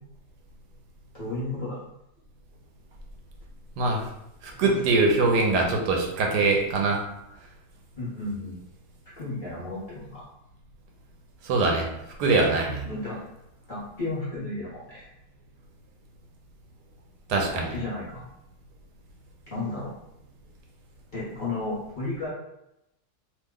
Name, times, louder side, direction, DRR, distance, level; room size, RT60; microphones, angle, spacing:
voice 1, 1.1-1.8 4.5-4.8 8.0-8.6 9.2-10.2 12.8-13.2 13.7-15.1 17.4-18.2 19.5-19.9 21.1-22.3, left 2 dB, 40° left, -9 dB, 0.8 m, -33 dB
voice 2, 4.4-7.0 11.4-11.9 12.2-12.9 17.3-17.7, right 3 dB, 80° right, 1 dB, 1.2 m, -23 dB
3.0 x 2.1 x 3.6 m, 0.83 s
omnidirectional pair, 1.7 m